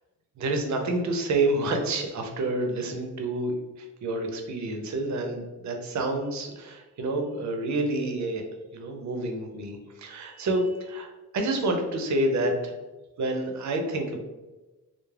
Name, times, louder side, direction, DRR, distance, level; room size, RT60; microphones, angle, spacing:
voice 1, 0.4-8.4 8.7-12.8 13.2-14.2, right 2 dB, 55° right, 4 dB, 0.6 m, -28 dB
2.3 x 2.0 x 3.2 m, 1.1 s
cardioid pair, 90°, 35 cm